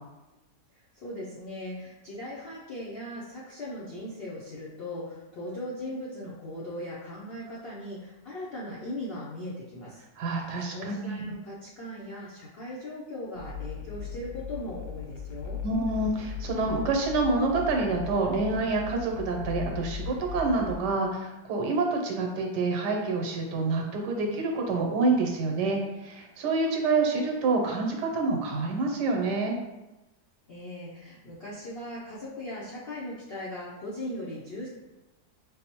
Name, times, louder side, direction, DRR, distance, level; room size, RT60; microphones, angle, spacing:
voice 1, 0.7-10.0 10.6-15.6 30.5-34.7, left 1 dB, 65° left, -7 dB, 0.5 m, -39 dB
voice 2, 10.2-11.2 15.6-29.6, right 3 dB, 85° right, 1 dB, 1.4 m, -27 dB
sound 1, 13.4-20.8, left 7 dB, 85° left, 1.2 m, -38 dB
5.6 x 2.1 x 2.8 m, 1.0 s
omnidirectional pair, 1.8 m